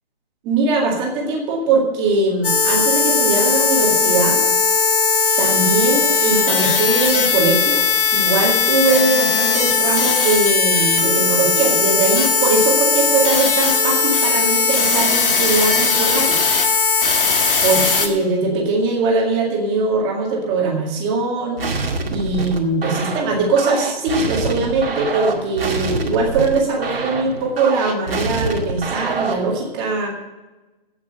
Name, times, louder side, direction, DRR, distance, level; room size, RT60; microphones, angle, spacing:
voice 1, 0.4-4.4 5.4-7.8 8.1-16.5 17.6-21.6 22.1-30.1, right 3 dB, 15° right, -1 dB, 2.0 m, -21 dB
sound 1, 2.4-18.1, left 4 dB, 60° left, 2.0 m, -18 dB
sound 2, 21.6-29.5, right 3 dB, 70° right, 2.2 m, -25 dB
15.5 x 6.0 x 7.8 m, 1.1 s
figure-of-eight pair, 150°, 31 cm